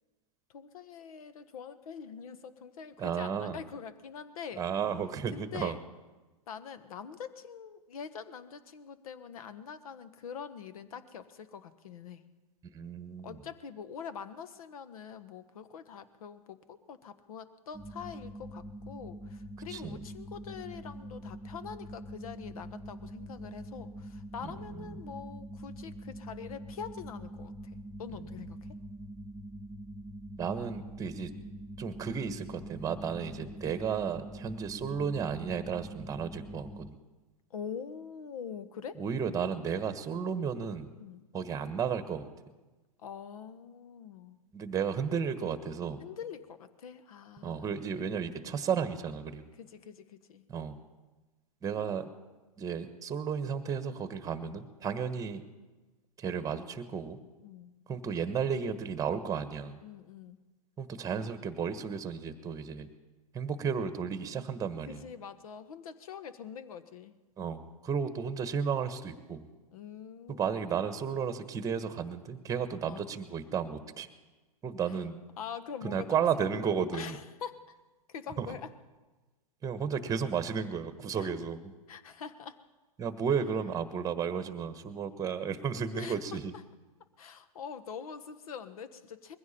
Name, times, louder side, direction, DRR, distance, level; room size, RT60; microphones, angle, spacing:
voice 1, 0.5-4.6 5.3-5.8 6.5-12.2 13.2-28.7 37.5-39.0 41.0-41.3 43.0-44.4 46.0-47.7 49.6-50.5 57.4-57.8 59.8-60.4 64.9-67.1 69.7-70.7 72.9-73.1 74.9-75.0 75.4-76.3 76.9-77.7 78.1-78.7 81.2-81.3 81.9-82.6 85.9-86.6 87.2-89.4, left 7 dB, 65° left, 12 dB, 1.3 m, -44 dB
voice 2, 3.0-3.6 4.6-5.8 12.7-13.4 19.7-20.0 24.4-25.0 30.4-31.3 31.8-37.0 39.0-40.9 41.3-42.3 44.5-46.0 47.4-49.4 50.5-50.8 51.6-52.1 52.6-55.4 56.2-57.2 57.9-59.8 60.8-62.9 63.3-65.0 67.4-69.5 70.3-74.1 74.6-75.2 75.8-77.2 78.4-78.5 79.6-81.7 83.0-86.5, right 6 dB, 20° right, 11 dB, 1.3 m, -33 dB
sound 1, 17.7-36.9, right 1 dB, ahead, 0.6 m, -44 dB
21.0 x 15.5 x 4.3 m, 1.2 s
hypercardioid pair, 115°, 19 cm